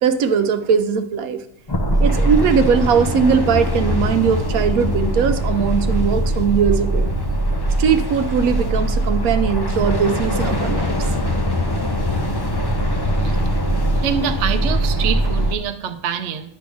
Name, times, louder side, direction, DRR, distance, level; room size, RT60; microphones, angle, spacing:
voice 1, 0.0-1.4 2.0-7.1 7.8-10.9, right 6 dB, 85° right, 9 dB, 1.1 m, -19 dB
sound 1, 1.7-15.6, equal, 30° left, 0.4 m, -21 dB
voice 2, 14.0-16.5, right 8 dB, 60° right, 8 dB, 0.9 m, -25 dB
10.0 x 3.5 x 6.2 m, 0.76 s
omnidirectional pair, 1.5 m